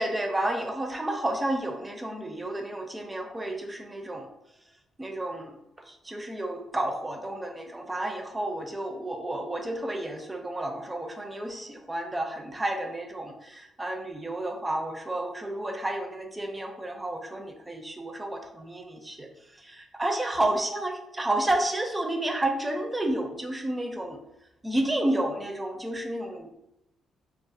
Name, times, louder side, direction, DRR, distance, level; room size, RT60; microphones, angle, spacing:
voice 1, 0.0-4.3 5.0-19.3 19.6-20.9 21.2-24.2 24.6-26.6, right 1 dB, 15° right, 4 dB, 0.4 m, -31 dB
2.3 x 2.3 x 2.5 m, 0.86 s
cardioid pair, 90°, 0 cm